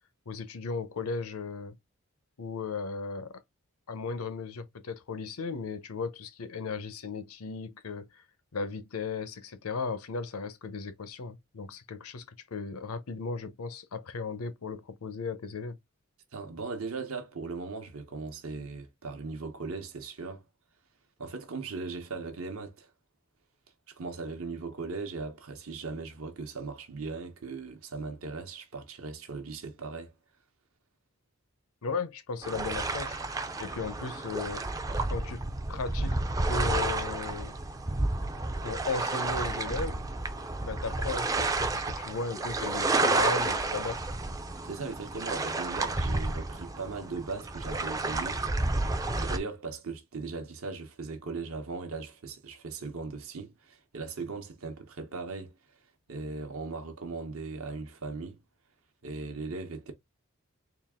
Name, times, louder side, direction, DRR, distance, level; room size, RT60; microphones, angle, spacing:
voice 1, 0.3-1.8 2.4-3.4 3.9-8.2 8.5-15.8 31.8-33.2 33.6-34.6 35.1-36.2 36.5-37.6 38.6-40.1 40.6-44.0, left 4 dB, 80° left, 0.7 m, -36 dB
voice 2, 16.3-20.4 21.2-22.9 23.9-30.1 44.6-48.4 49.2-55.5 56.1-58.4 59.0-59.9, right 4 dB, 70° right, 0.9 m, -38 dB
sound 1, 32.4-49.4, right 2 dB, 15° right, 0.4 m, -31 dB
3.9 x 2.4 x 3.6 m
head